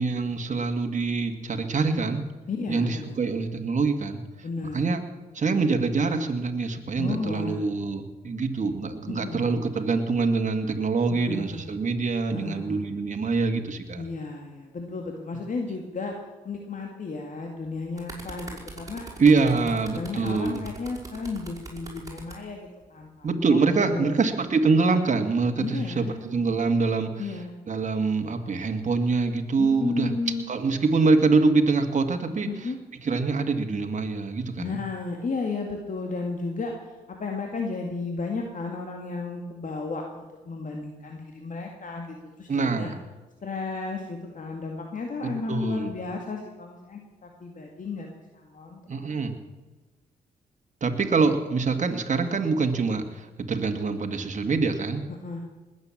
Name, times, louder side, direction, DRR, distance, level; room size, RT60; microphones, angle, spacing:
voice 1, 0.0-2.2 2.7-4.2 4.7-5.0 5.3-14.0 19.2-20.6 23.2-27.3 27.7-30.1 30.5-32.5 33.0-34.8 42.5-43.0 45.2-45.9 48.9-49.3 50.8-55.0, right 4 dB, 45° right, 5 dB, 2.0 m, -25 dB
voice 2, 2.5-3.2 4.4-4.8 7.0-7.6 9.2-9.5 11.2-11.7 12.3-12.8 14.0-16.1 16.4-19.7 19.9-24.2 25.6-26.2 27.2-27.5 29.6-30.5 32.5-32.8 34.6-42.9 43.4-49.1 55.2-55.4, left 3 dB, 50° left, 1 dB, 2.2 m, -33 dB
sound 1, 17.7-22.4 23.3-23.5, right 2 dB, 20° right, 5.4 m, -42 dB
20.0 x 8.2 x 7.3 m, 1.2 s
supercardioid pair, 50°, 17 cm